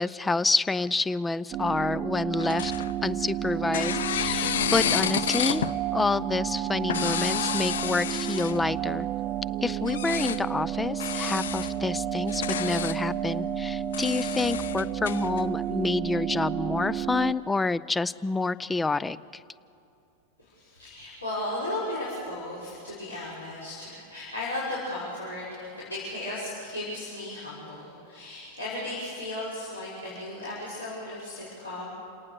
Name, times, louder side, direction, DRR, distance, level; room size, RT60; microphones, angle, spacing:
voice 1, 0.0-2.7 3.0-5.7 5.9-9.1 9.6-19.2, left 3 dB, 10° left, 19 dB, 0.5 m, -28 dB
sound 1, 1.5-17.3, right 11 dB, 30° right, 0.7 m, -31 dB
sound 2, 2.4-3.3 3.7-5.8 6.8-8.7 9.9-10.4 11.0-11.7 12.2-13.0 13.9-15.4, left 10 dB, 60° left, 0.5 m, -30 dB
voice 2, 20.4-31.9, left 1 dB, 80° left, -9 dB, 6.4 m, -35 dB
29.0 x 18.0 x 6.7 m, 2.7 s
figure-of-eight pair, 90°, 0 cm